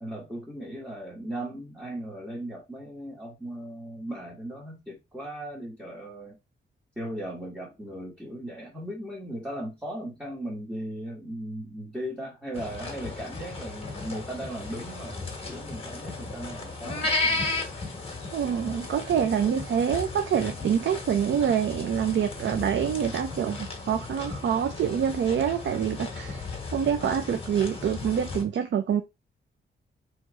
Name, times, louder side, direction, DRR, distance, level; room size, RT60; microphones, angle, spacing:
voice 1, 0.0-6.4 6.9-17.5, right 1 dB, 10° right, 1.4 m, -37 dB
sound 1, 12.5-28.4, left 3 dB, 30° left, 1.3 m, -35 dB
voice 2, 18.3-26.4 26.7-29.0, right 8 dB, 70° right, 0.5 m, -26 dB
3.2 x 3.1 x 4.7 m
wide cardioid pair, 130°, 20 cm